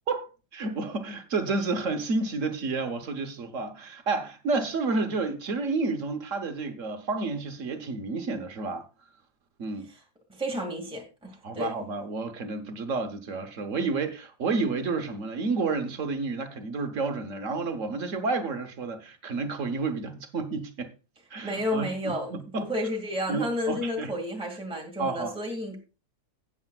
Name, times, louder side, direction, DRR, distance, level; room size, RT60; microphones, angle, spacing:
voice 1, 0.0-8.9 9.6-9.9 11.4-20.9 21.3-22.7 23.3-24.1 25.0-25.3, right 3 dB, 55° right, 1.3 m, -30 dB
voice 2, 10.3-11.7 21.4-25.8, left 1 dB, 5° right, 2.0 m, -31 dB
15.5 x 8.7 x 2.3 m
omnidirectional pair, 1.7 m